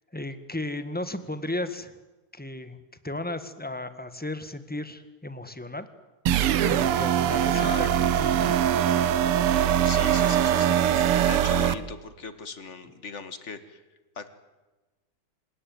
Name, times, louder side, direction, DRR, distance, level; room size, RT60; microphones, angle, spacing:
voice 1, 0.1-1.9 2.3-2.8 3.0-5.9 6.7-8.6, left 1 dB, 5° left, 11 dB, 1.2 m, -34 dB
sound 1, 6.3-11.7, right 10 dB, 85° right, 1.9 m, -22 dB
voice 2, 7.5-8.0 9.8-13.8 14.2-14.3, left 4 dB, 35° left, 11 dB, 1.9 m, -38 dB
27.5 x 18.0 x 9.3 m, 1.2 s
omnidirectional pair, 2.4 m